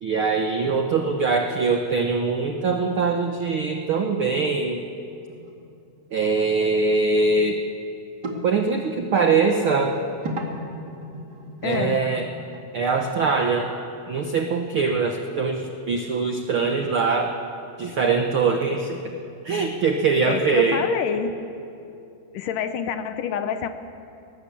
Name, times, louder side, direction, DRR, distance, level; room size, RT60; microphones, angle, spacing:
voice 1, 0.0-4.8 6.1-7.6 8.4-9.9 11.6-12.3 12.7-13.7 14.1-17.3 17.8-19.1 19.4-20.8, right 4 dB, 75° right, 4 dB, 1.2 m, -22 dB
sound 1, 5.3-5.5 5.8-5.9 6.7-6.8 7.1-7.2 8.2-8.4 9.7-12.7 14.6-14.7, equal, 35° right, 2.4 m, -35 dB
voice 2, 11.6-12.0 20.3-21.4 22.3-23.7, left 7 dB, 70° left, 9 dB, 2.4 m, -27 dB
21.0 x 19.0 x 8.5 m, 2.6 s
omnidirectional pair, 4.1 m